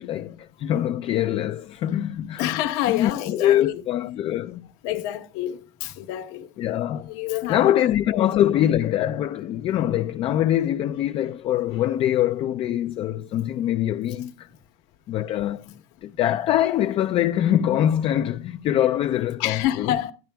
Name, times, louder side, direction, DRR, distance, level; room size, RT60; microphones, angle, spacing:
voice 1, 0.0-2.5 2.9-4.7 6.6-7.1 7.5-14.5 15.1-19.9, left 11 dB, 35° left, 0.3 m, -23 dB
voice 2, 2.4-3.7 4.8-6.5 6.9-7.6 19.4-20.1, left 13 dB, 70° left, 1.0 m, -27 dB
12.5 x 10.5 x 2.2 m
supercardioid pair, 140°, 15 cm